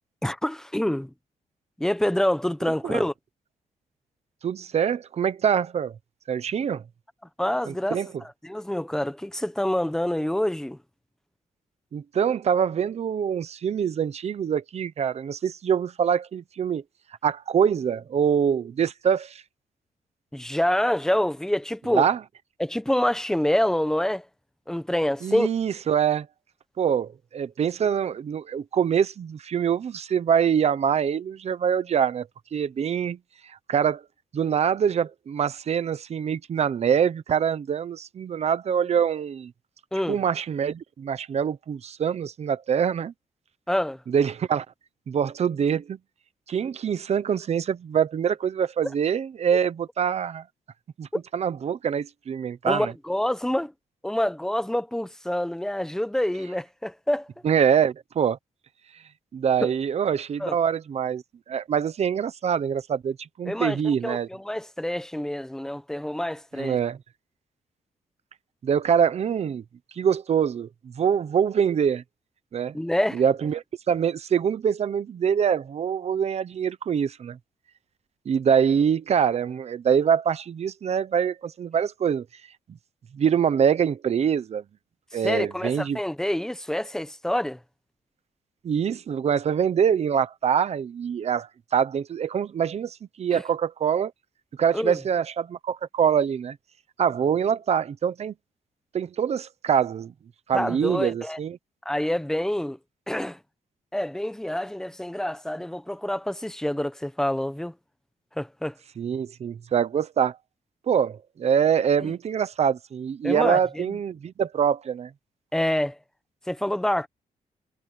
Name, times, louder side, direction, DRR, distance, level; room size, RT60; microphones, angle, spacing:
voice 1, 0.2-1.1 1.8-3.1 7.4-10.8 20.3-22.1 22.6-24.2 24.7-25.5 39.9-40.2 43.7-44.0 51.1-51.2 52.6-53.7 54.0-57.3 59.6-59.7 60.4-60.5 63.5-66.8 72.7-73.2 85.2-87.6 93.3-93.4 94.7-95.0 100.5-101.4 101.8-102.8 103.1-103.4 103.9-107.7 108.4-108.7 112.0-112.1 113.2-114.0 115.5-116.0 116.5-117.1, left 1 dB, 5° left, 1.2 m, -27 dB
voice 2, 4.4-5.9 6.3-6.8 7.7-8.1 11.9-16.8 17.2-19.4 21.9-22.2 25.2-26.3 26.8-33.2 33.4-34.0 34.3-39.5 40.1-43.1 44.1-44.6 45.1-46.0 46.5-50.4 51.0-51.1 51.3-52.9 57.4-58.4 59.3-61.2 61.5-64.3 66.5-67.0 68.6-69.6 70.0-72.0 72.5-72.8 73.1-77.4 78.2-82.2 83.1-84.6 85.1-86.0 88.6-94.1 94.6-96.6 97.0-98.3 98.9-100.1 100.5-101.6 109.0-110.4 110.9-115.1, right 8 dB, 50° right, 1.0 m, -24 dB
wide cardioid pair, 150°, 14 cm